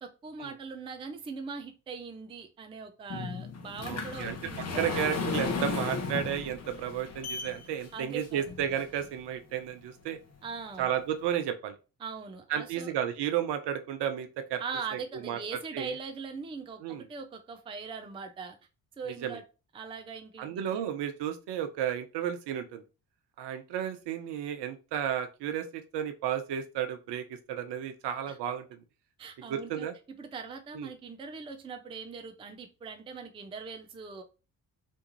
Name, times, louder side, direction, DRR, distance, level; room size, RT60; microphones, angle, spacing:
voice 1, 0.0-5.2 7.9-8.5 10.4-10.9 12.0-12.9 14.6-18.6 19.0-19.4 19.7-20.8 28.3-28.4 29.2-29.9 30.2-34.2, right 5 dB, 10° right, 0.4 m, -41 dB
sound 1, 3.1-9.2 9.8-9.9 10.5-10.6 10.9-11.0, left 5 dB, 30° left, 0.7 m, -35 dB
voice 2, 3.8-4.4 4.8-10.2 10.8-11.7 12.5-14.6 14.9-15.4 15.7-16.0 16.8-17.0 19.0-19.4 20.4-22.8 23.4-28.6 29.5-29.9 30.7-30.9, right 9 dB, 55° right, 0.6 m, -33 dB
2.6 x 2.3 x 2.9 m
hypercardioid pair, 45°, 49 cm